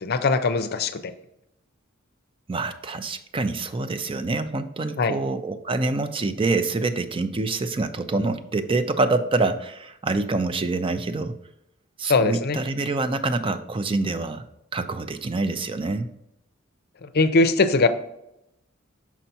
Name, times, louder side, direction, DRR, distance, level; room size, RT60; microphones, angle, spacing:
voice 1, 0.0-1.0 5.0-5.2 12.1-12.6 17.0-17.9, left 3 dB, 50° left, 10 dB, 0.5 m, -21 dB
voice 2, 2.5-11.4 12.0-14.4 14.7-16.1, right 3 dB, 25° right, 10 dB, 0.4 m, -26 dB
6.1 x 5.6 x 2.8 m, 0.83 s
head